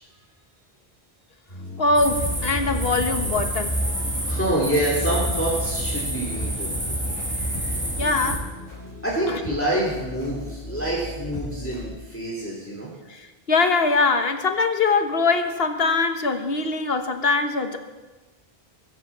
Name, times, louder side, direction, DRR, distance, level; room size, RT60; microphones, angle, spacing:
sound 1, 1.5-11.9, left 1 dB, 45° left, 6.6 m, -38 dB
voice 1, 1.8-3.7 8.0-8.5 9.3-9.4 13.1-17.8, left 3 dB, 75° left, 7 dB, 1.6 m, -22 dB
sound 2, 2.0-8.4, right 1 dB, 10° right, 2.3 m, -28 dB
voice 2, 4.2-6.7 9.0-12.9, right 1 dB, 10° left, -5 dB, 3.1 m, -26 dB
22.5 x 7.9 x 7.4 m, 1.2 s
omnidirectional pair, 1.0 m